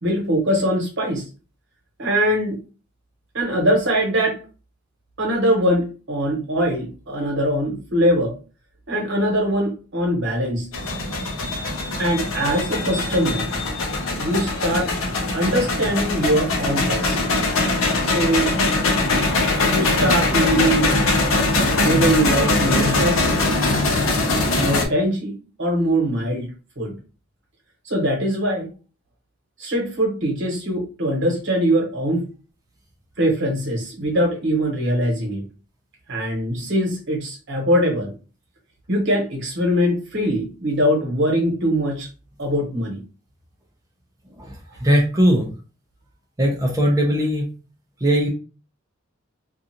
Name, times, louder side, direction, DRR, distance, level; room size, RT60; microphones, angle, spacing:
voice 1, 0.0-1.3 2.0-2.6 3.3-4.4 5.2-8.3 8.9-10.7 12.0-13.5 14.2-14.9 15.3-17.2 18.0-18.6 19.7-20.9 21.8-23.4 24.5-26.9 27.8-28.7 29.6-32.3 33.2-35.4 36.1-38.1 38.9-42.1 42.4-43.0, equal, 65° right, 0 dB, 1.1 m, -22 dB
sound 1, 10.7-24.9, left 2 dB, 75° left, 0.7 m, -21 dB
voice 2, 44.8-45.5 46.4-47.5 48.0-48.3, equal, 15° right, -2 dB, 0.5 m, -19 dB
2.4 x 2.4 x 2.8 m, 0.34 s
head